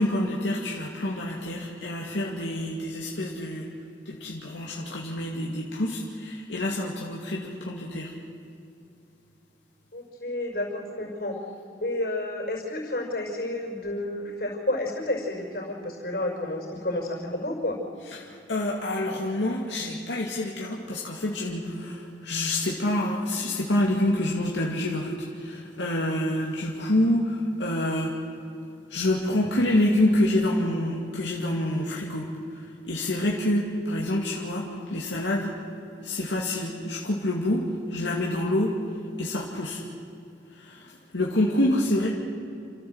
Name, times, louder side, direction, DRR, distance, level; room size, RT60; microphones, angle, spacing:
voice 1, 0.0-3.7 4.1-8.1 18.1-28.2 28.9-32.3 32.5-35.5 36.0-38.7 39.2-39.8 40.5-42.1, left 1 dB, 90° left, -2 dB, 2.3 m, -27 dB
voice 2, 9.9-11.4 11.8-17.8, left 1 dB, 60° left, 0 dB, 5.7 m, -30 dB
29.5 x 13.5 x 8.0 m, 2.6 s
head